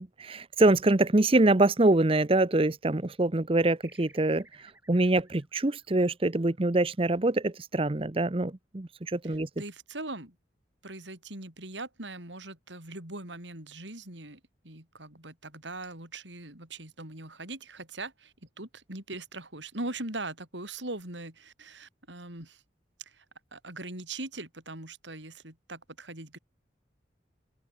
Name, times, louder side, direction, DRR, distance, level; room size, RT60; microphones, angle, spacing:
voice 1, 0.0-4.5 4.9-9.5, right 2 dB, 30° right, 0.8 m, -24 dB
sound 1, 3.8-6.8, right 2 dB, 10° right, 6.9 m, -58 dB
voice 2, 9.2-10.4 10.8-22.6 23.0-23.2 23.5-26.4, right 2 dB, 75° right, 6.3 m, -41 dB
open air
head